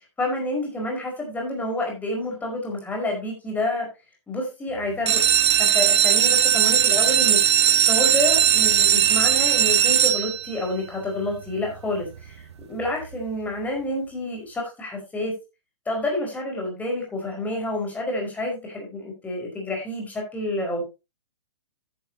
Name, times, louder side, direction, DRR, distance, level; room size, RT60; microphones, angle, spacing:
voice 1, 0.2-3.9 4.3-5.2 5.6-7.4 7.8-15.3 15.8-20.8, left 1 dB, 10° left, 0 dB, 5.0 m, -28 dB
sound 1, 4.9-10.7 11.3-11.8 12.2-12.3 12.5-12.6 13.0-13.2, right 9 dB, 60° right, 0.8 m, -19 dB
11.5 x 10.5 x 2.8 m, 0.27 s
figure-of-eight pair, 115°, 16 cm